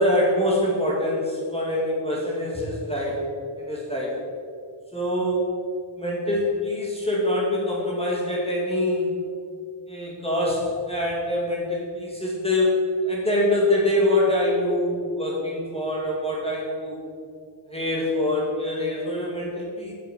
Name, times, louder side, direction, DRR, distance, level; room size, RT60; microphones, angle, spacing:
voice 1, 0.0-3.2 3.6-4.2 4.9-5.5 6.0-9.1 9.9-17.0 17.7-19.9, left 1 dB, 10° left, -5 dB, 2.1 m, -24 dB
8.1 x 6.4 x 7.1 m, 2.2 s
wide cardioid pair, 80°, 50 cm